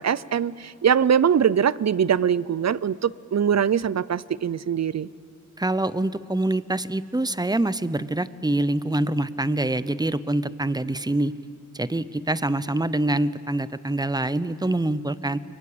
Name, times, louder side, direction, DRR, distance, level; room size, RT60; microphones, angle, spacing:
voice 1, 0.0-5.1, right 8 dB, 55° right, 20 dB, 0.6 m, -22 dB
voice 2, 5.6-11.3 11.7-15.4, right 1 dB, 10° right, 15 dB, 0.7 m, -25 dB
29.5 x 23.0 x 8.6 m, 2.5 s
wide cardioid pair, 80°, 31 cm